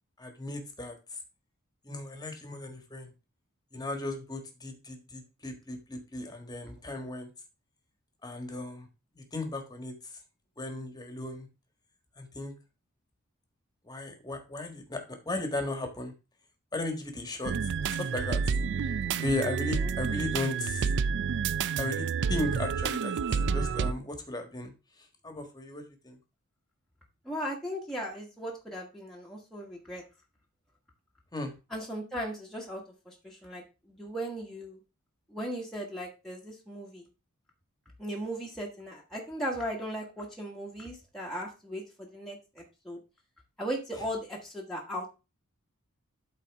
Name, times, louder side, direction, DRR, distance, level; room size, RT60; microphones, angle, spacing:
voice 1, 0.2-0.9 1.8-3.1 3.7-7.3 8.2-8.9 9.1-9.9 10.6-11.5 12.2-12.5 13.8-16.1 16.7-17.5 17.9-18.4 19.1-20.9 21.8-23.1 23.5-24.7 25.2-26.2 31.3-31.5 43.9-44.1, left 2 dB, 20° left, 5 dB, 1.4 m, -36 dB
sound 1, 17.4-23.9, right 6 dB, 55° right, 0.4 m, -29 dB
voice 2, 27.2-30.0 31.7-34.8 35.3-37.1 38.0-43.0 43.6-45.1, equal, ahead, -3 dB, 1.3 m, -37 dB
12.0 x 4.1 x 3.5 m, 0.29 s
head